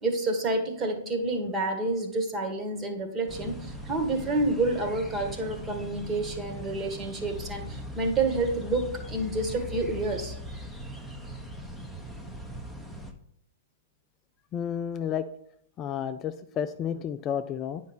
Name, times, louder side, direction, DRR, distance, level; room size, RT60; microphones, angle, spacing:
voice 1, 0.0-10.3, right 2 dB, 25° right, 4 dB, 1.6 m, -29 dB
sound 1, 3.3-13.1, equal, ahead, 0.9 m, -40 dB
voice 2, 14.5-15.3 15.8-17.8, left 8 dB, 30° left, 9 dB, 0.4 m, -31 dB
9.3 x 5.2 x 4.3 m, 0.70 s
figure-of-eight pair, 110°, 0 cm